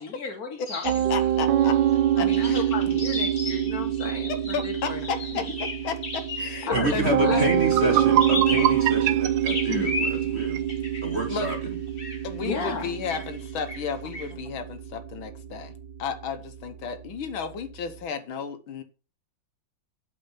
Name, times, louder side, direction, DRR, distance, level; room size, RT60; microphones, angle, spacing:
voice 1, 0.0-1.3 2.2-5.1 5.3-5.4 6.6-8.5 8.8-8.9 9.7-10.0 12.4-13.2, left 4 dB, 45° left, 1.9 m, -34 dB
sound 1, 0.7-6.9 8.1-9.1 9.5-11.6 12.0-12.2 13.1-13.4 13.7-14.3, left 3 dB, 25° left, 1.9 m, -35 dB
Piano, 0.8-18.0, right 11 dB, 65° right, 1.4 m, -26 dB
voice 2, 1.1-1.7 2.2-2.6 4.5-5.4 5.8-7.5 11.3-11.5 12.2-15.7 16.0-18.8, left 6 dB, 75° left, 1.8 m, -33 dB
voice 3, 6.7-10.6 11.0-11.8, right 1 dB, 40° right, 1.1 m, -29 dB
sound 2, 7.2-7.3 7.6-10.7, right 11 dB, 85° right, 1.6 m, -26 dB
8.6 x 5.2 x 5.7 m
omnidirectional pair, 2.3 m